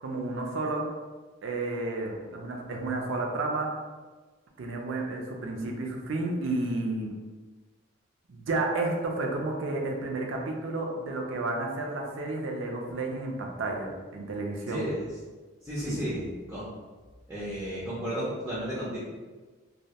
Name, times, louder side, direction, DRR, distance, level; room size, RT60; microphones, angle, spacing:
voice 1, 0.0-0.9 1.4-3.7 4.6-7.1 8.3-14.8 15.9-16.0, right 2 dB, 70° right, 1 dB, 0.4 m, -31 dB
voice 2, 14.7-15.1 15.6-16.6 17.3-19.0, equal, 5° right, -9 dB, 0.4 m, -33 dB
2.2 x 2.1 x 2.7 m, 1.3 s
head